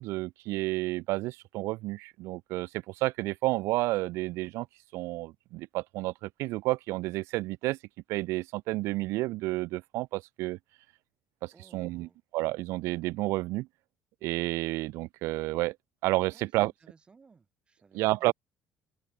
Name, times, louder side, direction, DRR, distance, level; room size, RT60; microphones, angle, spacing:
voice 1, 0.0-2.7 3.0-4.7 4.9-7.8 8.1-10.6 11.4-13.7 14.2-15.7 16.0-16.7 17.9-18.3, right 20 dB, 80° right, 1.2 m, -30 dB
voice 2, 11.5-12.2 16.3-18.3, right 4 dB, 20° right, 5.8 m, -59 dB
cardioid pair, 140°, 5 cm